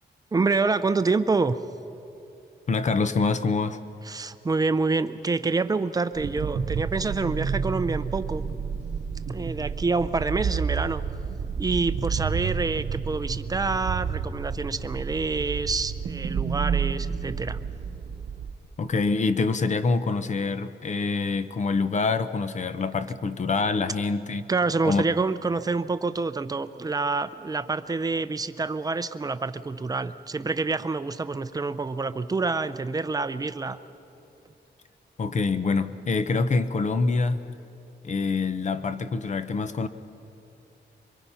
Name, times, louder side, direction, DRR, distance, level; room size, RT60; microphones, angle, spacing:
voice 1, 0.3-1.6 4.0-8.4 9.3-11.0 11.6-17.6 24.5-33.8, right 3 dB, 20° right, 12 dB, 0.6 m, -27 dB
voice 2, 2.7-3.8 18.8-24.5 24.8-25.0 35.2-37.6 38.0-39.9, left 4 dB, 40° left, 11 dB, 0.7 m, -25 dB
sound 1, 6.2-18.5, right 6 dB, 70° right, 1.0 m, -30 dB
24.5 x 22.5 x 5.7 m, 2.8 s
wide cardioid pair, 150°, 18 cm